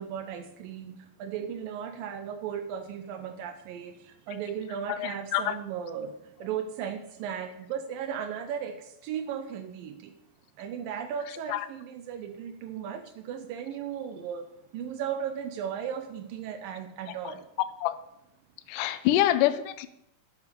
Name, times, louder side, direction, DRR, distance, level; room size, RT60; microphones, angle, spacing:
voice 1, 0.0-3.9 4.3-6.1 6.4-8.7 9.1-9.9 10.6-11.6 11.9-13.0 13.3-14.4 14.7-17.4, right 8 dB, 80° right, 8 dB, 2.5 m, -35 dB
voice 2, 4.9-5.6 11.5-11.6 17.8-17.9 18.7-19.9, left 13 dB, 80° left, 11 dB, 2.1 m, -26 dB
10.5 x 8.3 x 6.9 m, 0.78 s
omnidirectional pair, 4.1 m